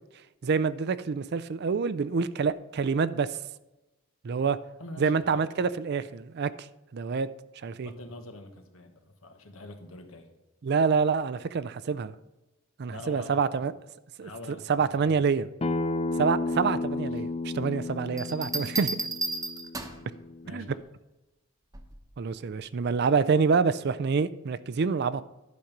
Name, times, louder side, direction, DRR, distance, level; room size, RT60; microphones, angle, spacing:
voice 1, 0.4-3.3 4.2-4.6 5.0-6.5 6.9-7.3 7.6-7.9 10.6-12.1 12.8-13.7 14.2-14.3 14.7-15.5 16.2-19.0 20.5-20.7 22.2-25.2, right 5 dB, 55° right, 16 dB, 0.4 m, -26 dB
voice 2, 4.8-5.6 7.8-10.3 12.9-13.5 14.2-15.1 17.1-17.3 20.4-20.9, left 1 dB, 80° left, 6 dB, 1.3 m, -45 dB
Acoustic guitar, 15.6-20.8, left 2 dB, 30° left, 0.4 m, -33 dB
sound 1, 18.2-20.1 21.7-22.1, right 2 dB, 15° right, 0.9 m, -33 dB
11.5 x 5.2 x 5.9 m, 1.0 s
head